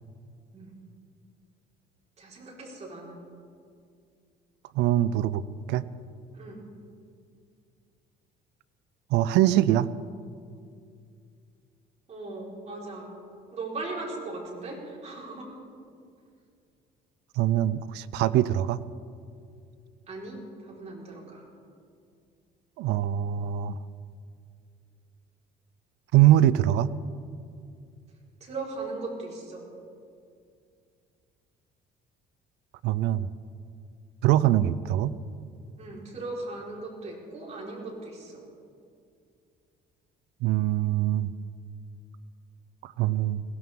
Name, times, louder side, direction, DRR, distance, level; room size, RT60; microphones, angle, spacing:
voice 1, 2.2-3.2 6.3-6.6 12.1-13.1 13.5-15.6 20.1-21.4 28.4-29.7 35.8-38.4, right 3 dB, 40° right, -3 dB, 4.7 m, -38 dB
voice 2, 4.7-5.4 5.7-5.8 9.1-9.9 17.4-18.8 22.8-23.8 26.1-26.9 32.8-33.3 34.2-35.2 40.4-41.3 42.8-43.4, right 13 dB, 90° right, 16 dB, 0.5 m, -23 dB
21.5 x 17.0 x 3.7 m, 2.4 s
cardioid pair, 110°, 17 cm